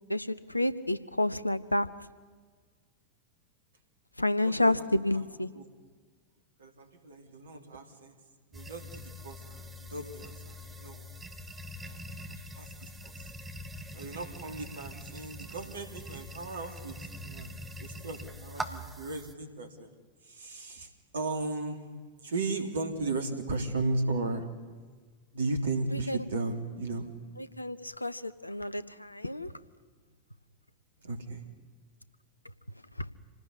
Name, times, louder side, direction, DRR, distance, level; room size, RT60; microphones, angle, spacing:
voice 1, 0.1-1.9 4.2-5.5 25.9-26.2 27.4-29.5 33.0-33.1, left 1 dB, 85° left, 14 dB, 1.0 m, -30 dB
voice 2, 4.4-4.8 5.1-5.2 5.5-5.7 6.6-8.1 8.5-11.1 11.8-13.1 13.9-17.0 17.2-17.5 17.8-19.9 20.2-21.8 22.2-24.4 25.3-27.1 31.0-31.5, right 3 dB, 65° right, 6 dB, 3.2 m, -36 dB
sound 1, 8.5-19.3, equal, 15° right, 1.9 m, -43 dB
27.0 x 18.5 x 9.9 m, 1.5 s
figure-of-eight pair, 90°, 0 cm